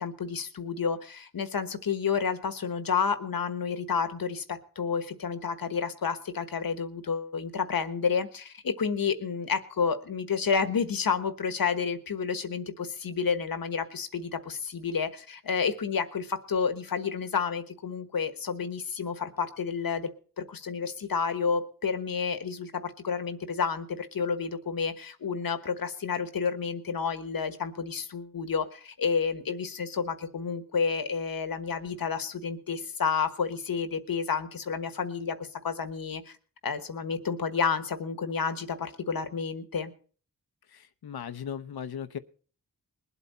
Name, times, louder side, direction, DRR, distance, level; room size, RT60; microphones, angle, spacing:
voice 1, 0.0-20.1 20.4-36.4 36.6-39.9, left 6 dB, 70° left, 10 dB, 1.3 m, -30 dB
voice 2, 40.7-42.2, left 8 dB, 85° left, 12 dB, 0.9 m, -37 dB
21.0 x 8.2 x 4.2 m, 0.42 s
wide cardioid pair, 90°, 36 cm